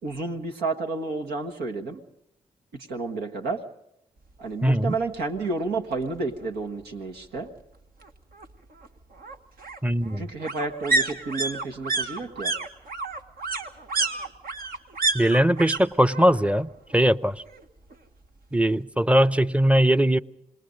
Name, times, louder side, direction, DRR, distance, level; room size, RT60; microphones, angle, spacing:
voice 1, 0.0-2.0 2.7-3.6 4.4-7.5 10.2-12.5, right 3 dB, 85° right, 3 dB, 1.5 m, -31 dB
voice 2, 4.6-4.9 9.8-10.2 15.1-17.4 18.5-20.2, equal, 10° right, 16 dB, 0.7 m, -20 dB
sound 1, 4.9-5.0 5.4-5.5 5.7-6.7 8.0-15.8 16.1-16.6 16.9-17.9 18.2-18.3, right 3 dB, 65° right, 1.5 m, -30 dB
26.5 x 20.5 x 5.3 m, 0.80 s
supercardioid pair, 45°, 16 cm